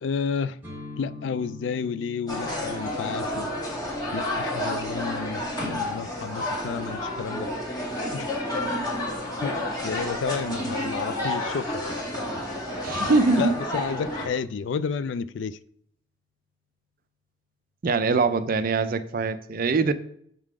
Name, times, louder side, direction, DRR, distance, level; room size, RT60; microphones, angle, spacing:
voice 1, 0.0-0.6 1.0-3.5 4.1-7.5 8.1-8.3 9.4-11.8 13.3-15.6, left 6 dB, 65° left, 0.3 m, -31 dB
sound 1, 0.6-8.4, left 4 dB, 10° right, 1.6 m, -47 dB
sound 2, 2.3-14.3, left 1 dB, 20° left, 2.0 m, -30 dB
voice 2, 12.8-13.5 17.8-19.9, right 4 dB, 50° right, 0.5 m, -23 dB
7.3 x 3.8 x 4.8 m
head